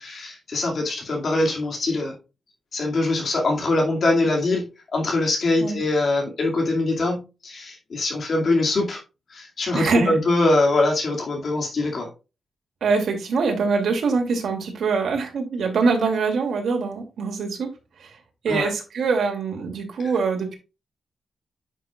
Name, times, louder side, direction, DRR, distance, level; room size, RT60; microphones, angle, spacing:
voice 1, 0.0-2.1 2.7-4.7 4.9-9.0 9.3-12.1 18.5-18.7 20.0-20.1, left 2 dB, 50° left, 2.4 m, -23 dB
voice 2, 9.7-10.1 12.8-17.7 18.0-18.2 18.4-20.6, right 4 dB, 70° right, 2.7 m, -23 dB
9.9 x 6.3 x 2.4 m
wide cardioid pair, 145°, 0 cm